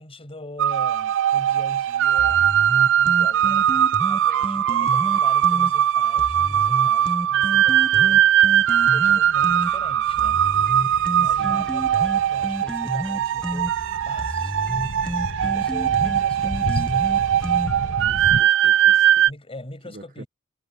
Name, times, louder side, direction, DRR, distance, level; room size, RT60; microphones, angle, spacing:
voice 1, 0.0-2.6 3.0-8.3 8.9-10.4 11.2-14.5 15.5-17.0 19.3-20.3, left 1 dB, 25° left, 6.9 m, -42 dB
sound 1, 0.6-19.3, right 10 dB, 60° right, 0.4 m, -20 dB
sound 2, 2.2-5.7 6.2-9.7 10.2-18.0, equal, 5° left, 0.9 m, -31 dB
sound 3, 6.7-6.9 7.2-7.3 7.7-18.4, equal, 60° left, 4.8 m, -35 dB
voice 2, 11.1-11.7 15.4-15.7 18.0-19.3 19.8-20.2, right 2 dB, 40° right, 1.3 m, -44 dB
head